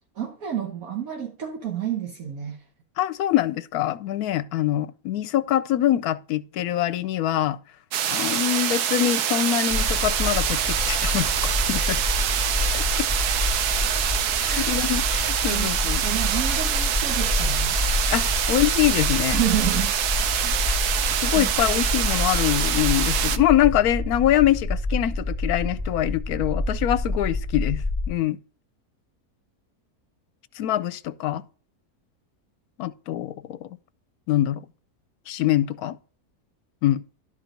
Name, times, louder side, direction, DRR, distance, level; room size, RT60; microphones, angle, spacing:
voice 1, 0.2-2.6 14.5-14.9 15.5-15.7 16.0-17.7 19.3-20.0 20.4-20.8 21.3-21.5, right 10 dB, 65° right, 1.4 m, -29 dB
voice 2, 3.0-7.6 8.1-11.3 11.7-12.0 12.7-13.1 14.4-16.0 18.1-19.4 21.2-27.8 28.1-28.4 30.6-31.4 32.8-33.7 34.3-34.6 35.3-36.0 36.8-37.0, left 12 dB, 75° left, 1.0 m, -24 dB
sound 1, 7.9-23.4, right 9 dB, 80° right, 1.2 m, -25 dB
sound 2, 9.7-28.1, left 2 dB, 5° left, 1.9 m, -28 dB
11.5 x 4.5 x 5.1 m
omnidirectional pair, 1.7 m